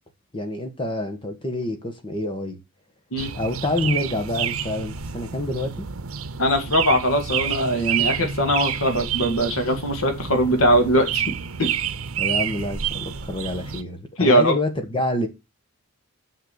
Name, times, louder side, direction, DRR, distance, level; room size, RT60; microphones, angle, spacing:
voice 1, 0.3-2.6 3.3-5.9 12.2-15.3, left 1 dB, 25° left, 1.5 m, -27 dB
sound 1, 3.2-13.8, right 8 dB, 75° right, 0.9 m, -29 dB
voice 2, 6.4-11.3 11.6-11.8 14.2-14.6, equal, 70° left, 2.1 m, -21 dB
6.7 x 6.6 x 6.9 m
head